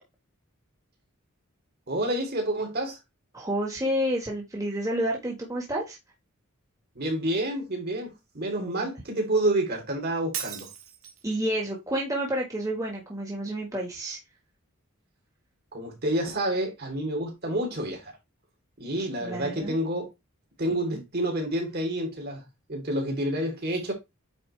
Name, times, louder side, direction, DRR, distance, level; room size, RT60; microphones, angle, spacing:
voice 1, 1.9-3.0 6.9-10.7 15.7-18.1 18.8-20.1 20.6-23.9, right 1 dB, 50° right, 3.2 m, -29 dB
voice 2, 3.3-6.0 8.6-8.8 11.2-14.2 19.2-19.7 20.7-21.0, equal, 15° right, 1.5 m, -30 dB
Shatter, 10.3-11.3, right 9 dB, 85° right, 1.7 m, -37 dB
8.8 x 4.2 x 3.3 m
head